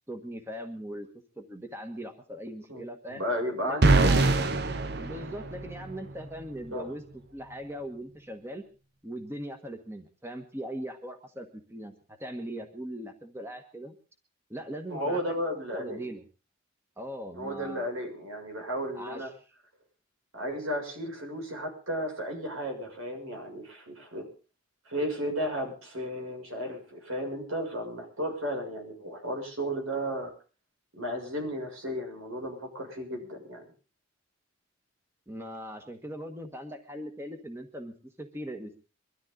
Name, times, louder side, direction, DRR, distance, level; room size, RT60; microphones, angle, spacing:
voice 1, 0.1-1.1 1.4-3.3 3.6-4.3 5.0-7.0 7.3-8.6 9.0-13.9 14.5-15.3 15.7-16.2 17.0-17.9 18.9-19.3 35.3-38.8, equal, 10° right, 6 dB, 1.4 m, -40 dB
voice 2, 2.7-4.4 6.7-6.9 14.9-16.1 17.3-19.3 20.3-24.3 24.9-30.3 30.9-33.7, equal, 80° right, 2 dB, 6.8 m, -34 dB
sound 1, 3.8-6.0, right 3 dB, 55° right, 1.0 m, -23 dB
23.0 x 13.5 x 3.9 m, 0.36 s
head